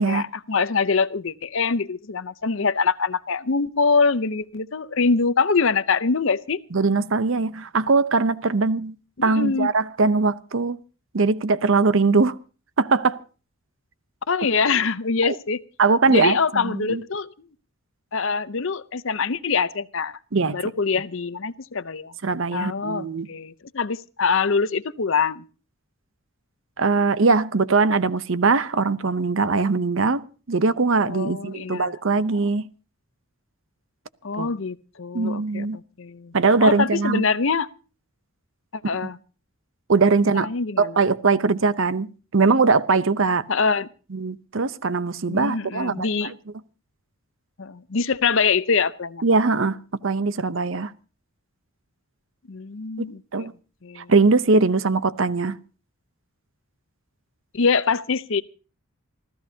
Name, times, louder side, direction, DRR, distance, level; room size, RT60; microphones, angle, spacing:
voice 1, 0.0-6.6 9.2-9.7 14.3-15.6 16.1-17.3 18.1-20.2 20.5-22.1 22.5-25.4 31.1-32.0 34.2-36.3 36.6-37.7 38.7-39.2 40.4-41.0 43.5-43.9 45.3-46.3 47.6-49.2 52.5-53.2 53.8-54.1 57.5-58.4, left 5 dB, 60° left, 0.7 m, -24 dB
voice 2, 6.7-9.0 9.2-10.8 11.1-12.4 12.8-13.2 15.3-15.4 15.8-17.0 20.3-20.6 22.2-23.3 26.8-32.7 34.4-34.5 35.1-35.8 36.3-37.2 39.9-40.5 40.8-42.1 42.3-43.5 44.1-46.3 49.2-50.9 53.3-53.5 54.0-55.6, right 4 dB, 60° right, 0.7 m, -21 dB
27.5 x 14.0 x 2.8 m
head